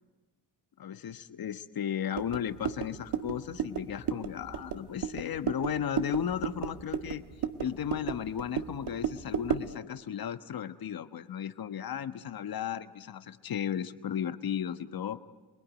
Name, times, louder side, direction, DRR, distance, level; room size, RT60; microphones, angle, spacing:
voice 1, 0.8-7.2 7.6-15.2, left 9 dB, 60° left, 11 dB, 1.3 m, -35 dB
sound 1, 2.1-9.8, right 8 dB, 70° right, 1.5 m, -35 dB
27.5 x 21.0 x 9.4 m, 1.3 s
cardioid pair, 90°, 41 cm